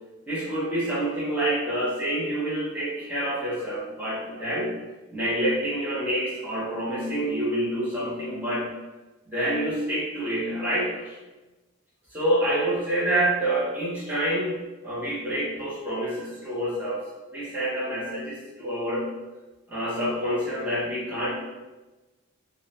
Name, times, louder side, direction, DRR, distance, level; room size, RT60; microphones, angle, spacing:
voice 1, 0.3-4.8 5.1-8.7 9.3-11.2 12.1-17.0 17.3-19.1 19.7-21.4, right 1 dB, 10° right, -9 dB, 0.8 m, -27 dB
3.6 x 2.1 x 2.8 m, 1.1 s
head